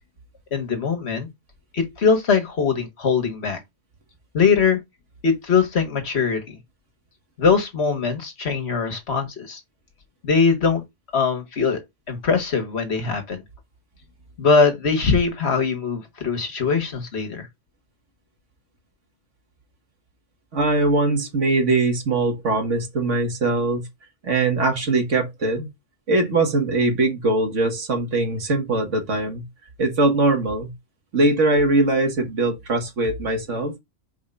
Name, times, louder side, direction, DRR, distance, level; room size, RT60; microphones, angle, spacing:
voice 1, 0.5-1.3 1.7-3.6 4.3-4.8 5.2-6.6 7.4-9.6 10.2-10.8 11.1-11.8 12.1-13.4 14.4-17.5, left 5 dB, 60° left, 1.6 m, -21 dB
voice 2, 20.5-23.8 24.2-25.7 26.1-29.4 29.8-30.7 31.1-33.8, right 2 dB, 85° right, 2.0 m, -21 dB
4.8 x 3.7 x 5.5 m
omnidirectional pair, 1.2 m